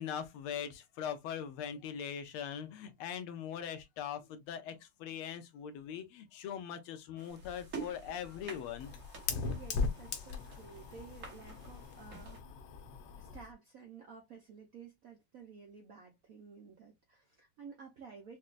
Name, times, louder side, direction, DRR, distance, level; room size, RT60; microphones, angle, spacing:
voice 1, 0.0-8.9, left 8 dB, 85° left, 1.6 m, -41 dB
sound 1, 7.2-12.4, right 5 dB, 45° right, 1.3 m, -49 dB
Fire, 7.3-13.5, left 4 dB, 70° left, 1.4 m, -40 dB
voice 2, 9.5-12.4 13.2-18.4, right 5 dB, 70° right, 0.8 m, -53 dB
5.3 x 2.2 x 2.4 m
omnidirectional pair, 2.3 m